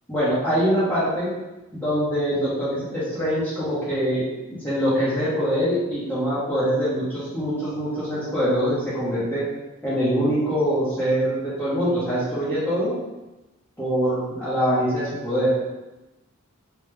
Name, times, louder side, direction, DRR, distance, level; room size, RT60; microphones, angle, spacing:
voice 1, 0.1-1.3 1.7-9.4 9.8-12.9 13.8-15.5, equal, 10° left, -13 dB, 1.2 m, -24 dB
3.3 x 3.1 x 3.3 m, 1.1 s
head